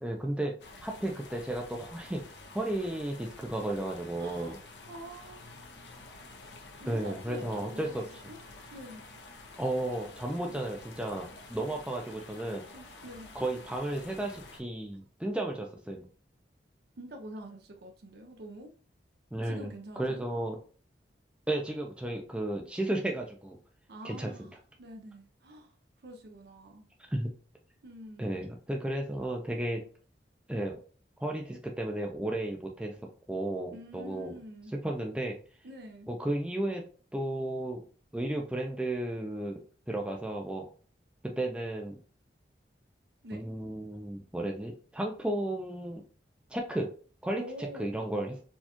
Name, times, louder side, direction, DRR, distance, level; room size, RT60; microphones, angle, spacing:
voice 1, 0.0-0.6 0.8-2.2 2.5-4.6 6.9-8.0 9.6-12.6 13.3-16.0 19.3-19.7 20.0-20.6 21.5-23.6 24.0-24.5 27.1-27.3 28.2-29.8 30.5-30.8 31.2-33.0 33.3-34.4 34.8-35.4 36.1-36.8 37.1-37.8 38.1-39.6 39.9-40.7 41.2-42.0 43.3-46.0 46.5-46.9 47.2-48.4, right 1 dB, 5° right, 1 dB, 0.4 m, -33 dB
sound 1, 0.6-14.6, left 3 dB, 85° left, 0.7 m, -50 dB
voice 2, 4.2-4.6 4.9-5.5 6.8-7.9 8.3-8.4 8.7-9.0 12.5-13.3 17.0-18.7 19.4-20.2 23.9-25.7 26.0-26.9 27.8-28.4 33.7-34.7 35.6-36.1 43.2-43.4 47.3-48.0, right 1 dB, 65° right, 4 dB, 0.5 m, -46 dB
4.2 x 2.3 x 2.9 m, 0.39 s
head